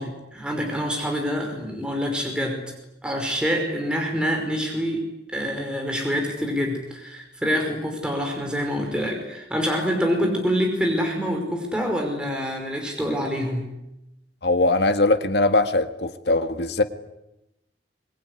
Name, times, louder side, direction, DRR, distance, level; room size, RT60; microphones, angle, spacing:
voice 1, 0.0-2.7 3.0-5.0 5.3-13.7, equal, 5° right, 1 dB, 5.3 m, -26 dB
voice 2, 14.4-16.8, left 2 dB, 70° left, 9 dB, 1.8 m, -21 dB
24.5 x 23.0 x 10.0 m, 0.90 s
head